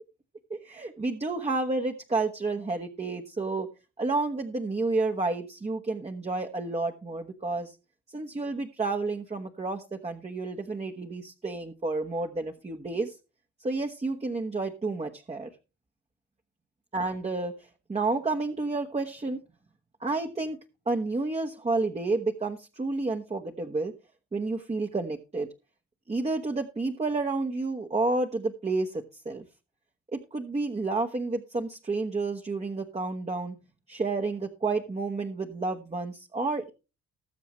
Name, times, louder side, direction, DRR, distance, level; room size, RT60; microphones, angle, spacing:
voice 1, 0.5-3.7 4.0-7.7 8.1-13.1 13.6-15.5 16.9-17.5 17.9-19.4 20.0-20.6 20.9-23.9 24.3-25.5 26.1-29.4 30.1-33.6 33.9-36.7, right 3 dB, 20° right, 3 dB, 1.2 m, -30 dB
20.0 x 7.0 x 3.1 m, 0.29 s
cardioid pair, 90°, 30 cm